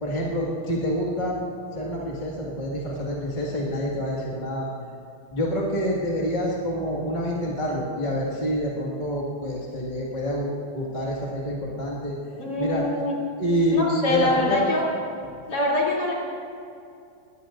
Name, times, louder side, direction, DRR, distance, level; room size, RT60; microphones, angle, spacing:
voice 1, 0.0-1.5 1.7-4.7 5.3-12.1 12.6-12.8 13.4-14.6, equal, 20° left, -4 dB, 1.8 m, -27 dB
voice 2, 12.3-13.1 13.7-14.9 15.5-16.1, left 1 dB, 50° left, -5 dB, 3.5 m, -24 dB
21.5 x 16.5 x 2.5 m, 2.5 s
omnidirectional pair, 2.4 m